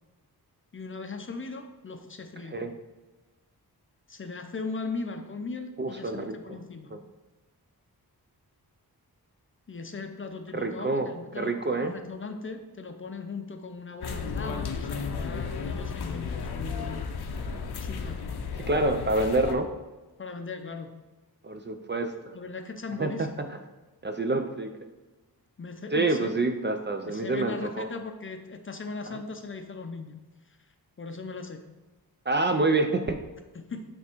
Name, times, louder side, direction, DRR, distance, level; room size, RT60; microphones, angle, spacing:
voice 1, 0.7-2.6 4.1-6.9 9.7-17.0 17.8-18.3 20.2-20.9 22.3-23.3 25.6-26.3 27.0-30.2 31.0-31.6 33.5-33.8, left 4 dB, 35° left, 6 dB, 0.5 m, -38 dB
voice 2, 5.8-6.6 6.9-7.0 10.5-11.1 11.4-11.9 18.7-19.7 21.4-22.3 23.0-23.3 24.0-24.7 25.9-27.9 32.3-33.2, right 2 dB, 30° right, 6 dB, 0.4 m, -27 dB
sound 1, 14.0-19.5, left 5 dB, 80° left, 0.7 m, -33 dB
9.4 x 3.5 x 4.4 m, 1.2 s
wide cardioid pair, 175°, 38 cm